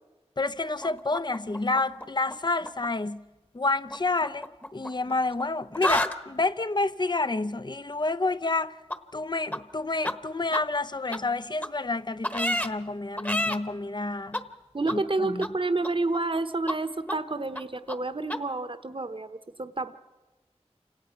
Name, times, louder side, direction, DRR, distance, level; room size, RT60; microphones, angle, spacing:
voice 1, 0.4-3.2 3.5-4.5 4.7-8.8 9.1-14.4 14.9-15.5, left 3 dB, 40° left, 0.6 m, -29 dB
sound 1, 0.8-2.3 2.6-2.9 3.9-5.4 5.7-6.2 8.9-9.0 9.5-9.6 10.0-10.1 10.5-10.6 11.1-11.2 11.6-11.7 12.2-12.7 13.2-13.6 14.3-14.4 14.9-15.0 15.4-15.5 15.8-16.4 16.7-16.8 17.1-17.2 17.5-17.6 17.9-18.0 18.3-18.4, left 1 dB, 15° left, 1.1 m, -29 dB
voice 2, 14.7-19.9, right 2 dB, 50° right, 1.0 m, -29 dB
28.5 x 18.0 x 5.9 m
wide cardioid pair, 50°, 11 cm